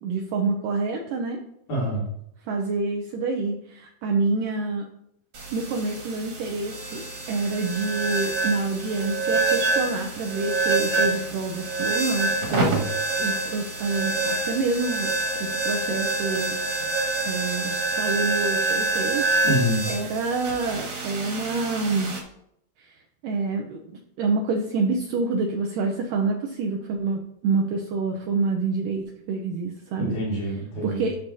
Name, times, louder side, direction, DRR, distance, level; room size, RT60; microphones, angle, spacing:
voice 1, 0.0-1.4 2.5-4.9 5.5-16.6 17.2-19.3 19.9-22.1 22.8-23.0 23.2-30.1 30.8-31.2, right 3 dB, 90° right, 2 dB, 1.9 m, -27 dB
voice 2, 1.7-2.0 12.5-12.8 19.4-19.9 30.0-31.0, equal, 50° left, -6 dB, 4.3 m, -26 dB
sound 1, 5.3-22.2, right 2 dB, 45° right, 2.2 m, -27 dB
11.5 x 7.0 x 2.8 m, 0.74 s
omnidirectional pair, 4.9 m